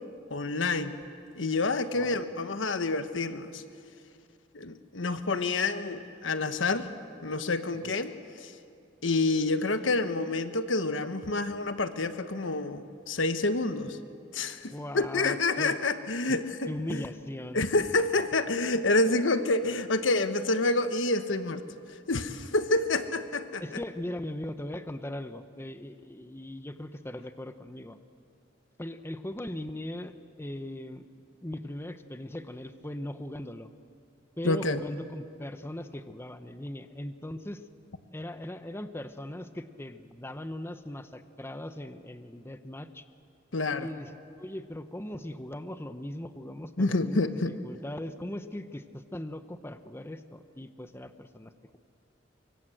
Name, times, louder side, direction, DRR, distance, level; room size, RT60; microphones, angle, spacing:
voice 1, 0.3-1.0 1.3-3.6 4.5-6.9 7.2-8.1 8.4-8.5 9.0-14.0 14.3-17.0 17.5-21.6 22.1-23.6 34.4-34.8 43.5-43.9 46.8-47.5, left 2 dB, 90° left, 10 dB, 1.3 m, -28 dB
voice 2, 1.9-2.3 7.7-7.9 14.7-15.8 16.3-16.4 16.7-17.6 23.6-28.0 28.8-31.1 31.4-33.7 34.4-37.6 38.1-43.0 43.8-47.4 47.6-51.8, left 1 dB, 15° left, 10 dB, 0.8 m, -39 dB
24.5 x 24.5 x 7.8 m, 2.5 s
head